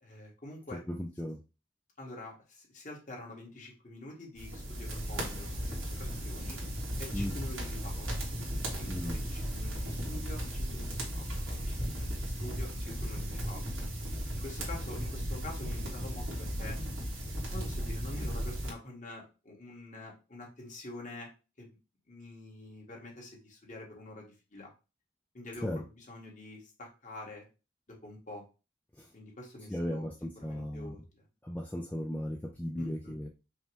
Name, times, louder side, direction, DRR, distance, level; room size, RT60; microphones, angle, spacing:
voice 1, 0.0-0.8 2.0-6.6 7.0-8.2 8.8-10.9 11.1-13.6 14.3-16.8 17.5-21.3 21.6-21.7 22.1-24.2 24.5-24.7 25.3-27.5 27.9-28.4 29.1-30.1 30.4-31.2 32.8-33.1, left 1 dB, 40° left, -2 dB, 1.4 m, -47 dB
voice 2, 0.9-1.4 7.1-7.3 8.9-9.2 25.6-25.8 28.9-29.1 29.7-30.9 31.4-33.3, equal, 10° left, 0 dB, 0.4 m, -36 dB
sound 1, 4.4-18.7, equal, 85° right, 1.6 m, -36 dB
5.5 x 2.2 x 3.3 m, 0.30 s
head